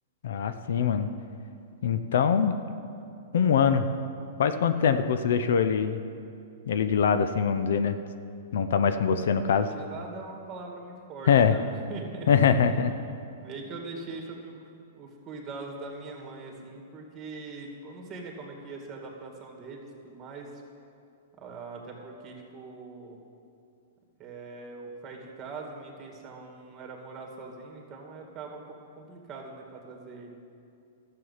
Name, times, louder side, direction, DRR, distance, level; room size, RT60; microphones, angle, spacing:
voice 1, 0.2-1.1 1.8-2.6 3.3-3.9 4.4-6.0 6.7-8.0 8.5-9.7 11.3-11.6 12.3-12.9, left 7 dB, 75° left, 10 dB, 0.6 m, -23 dB
voice 2, 9.3-12.8 13.4-14.6 14.9-20.6 21.4-23.2 24.2-30.4, right 3 dB, 25° right, 1 dB, 2.2 m, -42 dB
12.5 x 7.7 x 5.7 m, 2.4 s
hypercardioid pair, 130°, 0 cm